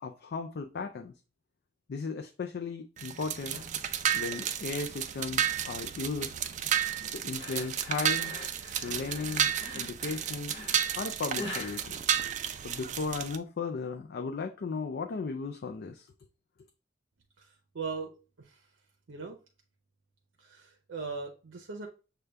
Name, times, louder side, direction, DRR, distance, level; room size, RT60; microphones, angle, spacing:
voice 1, 0.0-1.1 1.9-3.7 4.1-6.3 7.1-8.3 8.8-10.6 10.9-12.0 12.6-16.1, left 4 dB, 55° left, 0.4 m, -36 dB
sound 1, 3.0-13.4, right 9 dB, 40° right, 0.4 m, -32 dB
sound 2, 7.4-12.9, left 1 dB, 25° left, 1.0 m, -44 dB
voice 2, 17.4-18.1 18.4-18.6 19.1-19.4 20.4-21.9, right 4 dB, 80° right, 0.7 m, -39 dB
6.5 x 2.3 x 3.3 m
head